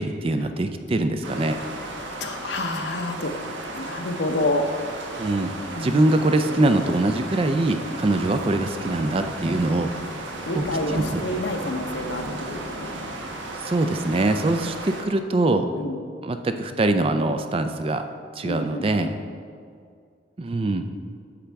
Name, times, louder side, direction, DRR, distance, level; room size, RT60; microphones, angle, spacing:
voice 1, 0.0-1.6 5.2-5.5 5.8-9.9 10.5-10.6 10.9-11.2 13.6-15.7 16.2-18.0 18.4-19.1 20.4-20.8, right 2 dB, 30° right, 8 dB, 0.3 m, -23 dB
sound 1, 1.2-15.0, right 1 dB, 75° right, 1.0 m, -34 dB
voice 2, 2.2-3.3 3.7-4.7 5.7-6.1 10.5-13.0 15.7-16.0 18.4-19.1, left 1 dB, 65° left, 5 dB, 0.7 m, -28 dB
9.8 x 7.1 x 3.4 m, 2.2 s
head